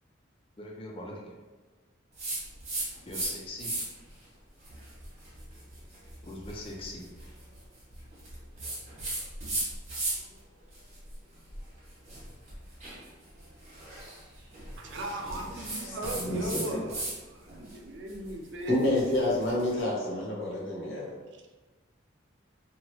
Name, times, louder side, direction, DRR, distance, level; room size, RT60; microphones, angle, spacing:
voice 1, 0.6-1.3 3.1-3.8 6.2-7.1, left 1 dB, 25° left, -1 dB, 0.5 m, -41 dB
sound 1, 2.2-3.3 3.6-4.1 4.6-10.4 10.7-17.2 17.5-19.7, right 2 dB, 35° right, 0.9 m, -37 dB
voice 2, 14.8-18.7 21.3-21.6, right 2 dB, 60° right, 2 dB, 0.4 m, -38 dB
voice 3, 15.8-16.8 18.7-21.2, left 1 dB, 70° left, -4 dB, 0.9 m, -29 dB
2.9 x 2.3 x 3.0 m, 1.3 s
head